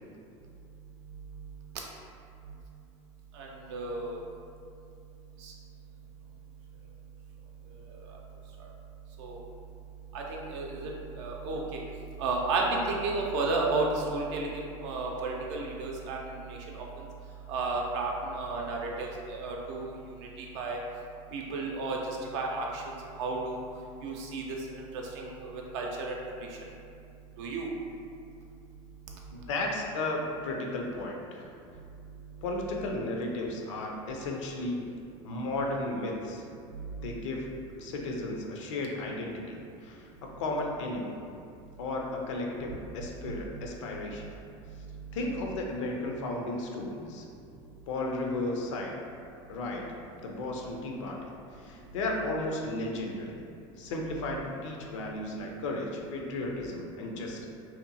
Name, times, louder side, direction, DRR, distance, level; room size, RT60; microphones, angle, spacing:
voice 1, 3.4-4.2 5.4-5.5 9.2-9.4 10.1-10.9 11.2-11.8 12.2-16.2 16.5-16.9 17.5-19.9 20.4-20.8 21.3-22.8 23.2-23.6 24.0-24.4 24.7-26.2 27.4-27.7 36.7-37.0 43.2-43.4, right 3 dB, 70° right, -1 dB, 0.5 m, -32 dB
voice 2, 29.3-31.5 32.4-34.8 35.2-36.4 37.0-37.5 37.8-41.1 41.8-44.2 45.1-47.3 47.9-49.0 49.5-49.9 50.2-53.4 53.8-57.5, left 2 dB, 85° left, 1 dB, 0.4 m, -34 dB
2.7 x 2.2 x 2.6 m, 2.5 s
supercardioid pair, 100°, 15 cm